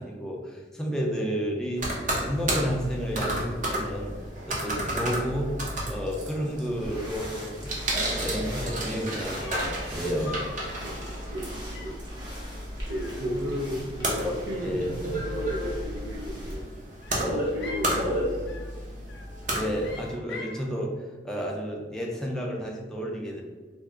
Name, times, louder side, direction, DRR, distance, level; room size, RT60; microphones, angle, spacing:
voice 1, 0.0-1.8 2.2-4.2 4.4-5.5 5.9-7.7 8.1-9.6 9.9-10.4 14.2-14.4 14.6-14.9 19.5-23.4, equal, 5° left, -2 dB, 0.5 m, -31 dB
sound 1, 1.8-20.1, right 1 dB, 45° right, 0.7 m, -32 dB
sound 2, 6.7-16.6, equal, 25° right, 1.0 m, -42 dB
sound 3, 8.6-9.0 9.4-9.8 10.2-10.6 11.0-11.3 11.7-12.1 12.9-13.7 14.0-14.7 15.9-16.5 17.0-17.9 18.5-18.8 19.1-19.4 19.8-20.6, left 3 dB, 70° left, 0.5 m, -44 dB
voice 2, 10.8-12.0 12.9-14.8 15.3-16.7 17.2-18.7, equal, 80° right, -3 dB, 0.4 m, -35 dB
3.3 x 2.0 x 3.6 m, 1.4 s
head